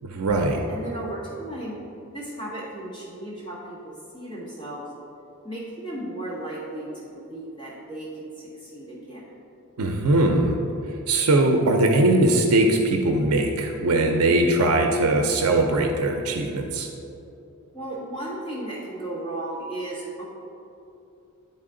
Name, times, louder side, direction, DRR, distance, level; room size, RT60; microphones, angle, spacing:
voice 1, 0.0-0.6 9.8-10.6 11.1-16.9, right 2 dB, 85° right, 3 dB, 0.5 m, -21 dB
voice 2, 0.7-1.8 2.1-4.9 5.4-9.2 17.7-20.2, right 1 dB, 20° left, -9 dB, 1.6 m, -35 dB
10.5 x 4.2 x 3.7 m, 2.8 s
head